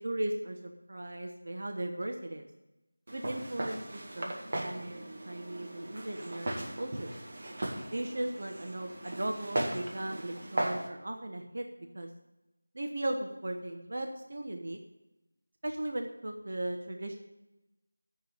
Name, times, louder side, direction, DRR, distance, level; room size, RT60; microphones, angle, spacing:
voice 1, 0.0-2.5 3.1-7.1 7.9-11.6 11.9-12.1 12.7-14.8 15.6-17.2, right 1 dB, 50° right, 4 dB, 1.0 m, -37 dB
Walk footsteps, 3.1-10.9, right 1 dB, 35° right, 1.5 m, -37 dB
8.6 x 6.1 x 8.1 m, 0.96 s
figure-of-eight pair, 175°, 0 cm